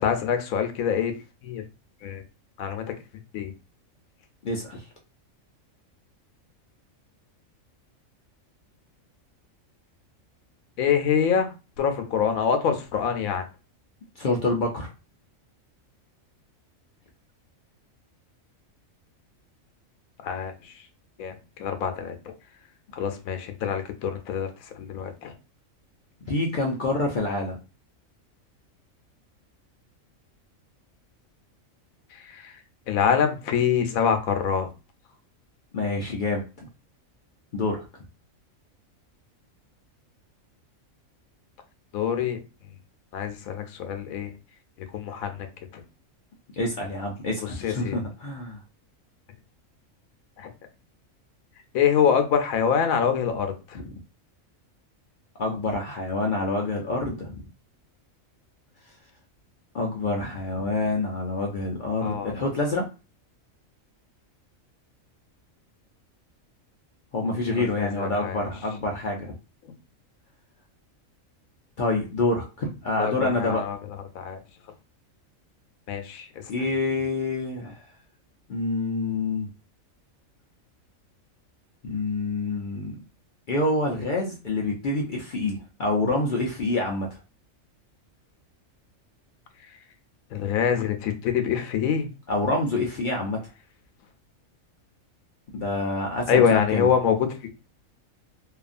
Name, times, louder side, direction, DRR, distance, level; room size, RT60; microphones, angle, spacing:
voice 1, 0.0-1.1 1.4-1.6 2.0-2.2 2.6-2.9 3.3-3.5 10.8-11.5 11.8-13.4 20.2-20.5 21.2-22.2 22.9-24.5 24.8-25.3 32.3-32.5 32.9-34.7 41.9-42.4 43.1-44.3 44.9-45.5 45.7-45.8 47.6-48.0 50.4-50.5 51.7-53.8 62.0-62.3 67.6-68.4 73.0-73.8 74.1-74.4 75.9-76.3 90.3-92.1 96.3-97.3, left 7 dB, 85° left, 7 dB, 1.0 m, -25 dB
voice 2, 4.4-4.8 14.2-14.9 26.3-27.6 35.7-36.7 37.5-37.8 46.6-48.6 53.7-53.9 55.4-57.4 59.7-62.8 67.1-69.3 71.8-73.6 76.5-77.8 78.5-79.5 81.8-83.0 83.5-87.1 92.3-93.4 95.5-96.9, left 2 dB, 65° left, 0 dB, 0.5 m, -27 dB
2.8 x 2.4 x 2.5 m, 0.31 s
omnidirectional pair, 1.4 m